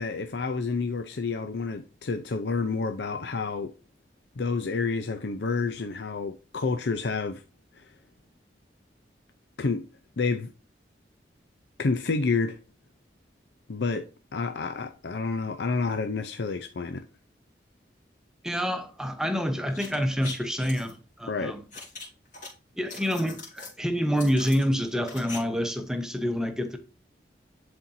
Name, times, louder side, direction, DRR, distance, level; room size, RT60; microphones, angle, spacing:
voice 1, 0.0-3.7 4.4-7.4 7.8-7.9 9.6-9.9 10.2-10.5 11.8-12.6 13.7-17.0 21.3-21.6, left 4 dB, 75° left, 0.6 m, -29 dB
voice 2, 18.4-21.6 22.8-26.8, equal, 5° right, 0.9 m, -27 dB
sound 1, 19.7-20.9 21.7-22.5 22.8-23.8 24.2-25.4 25.6-25.7, left 3 dB, 45° left, 3.5 m, -41 dB
11.0 x 4.4 x 2.7 m
head